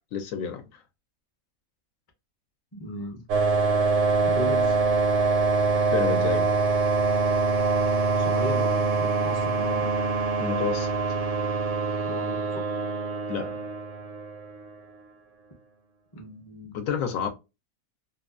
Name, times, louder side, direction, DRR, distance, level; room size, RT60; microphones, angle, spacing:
voice 1, 0.1-0.6 5.9-6.5 10.4-10.9 13.3-13.6 16.7-17.3, left 7 dB, 70° left, 1.0 m, -29 dB
voice 2, 2.7-3.2 4.2-4.8 8.2-9.9 12.1-12.7 16.1-16.8, left 1 dB, 25° left, 0.5 m, -36 dB
sound 1, 3.3-14.7, right 4 dB, 70° right, 0.8 m, -24 dB
2.7 x 2.2 x 2.3 m
omnidirectional pair, 1.5 m